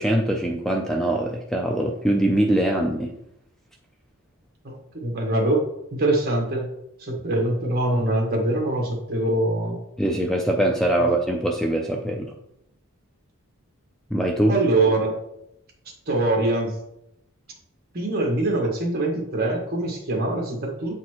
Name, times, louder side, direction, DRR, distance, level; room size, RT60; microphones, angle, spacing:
voice 1, 0.0-3.1 10.0-12.3 14.1-14.6, right 1 dB, ahead, 1 dB, 0.4 m, -22 dB
voice 2, 4.6-5.6 5.9-6.7 7.0-9.8 14.5-15.1 16.1-16.7 17.9-21.0, right 2 dB, 45° right, 0 dB, 1.5 m, -23 dB
8.4 x 4.1 x 3.0 m, 0.80 s
head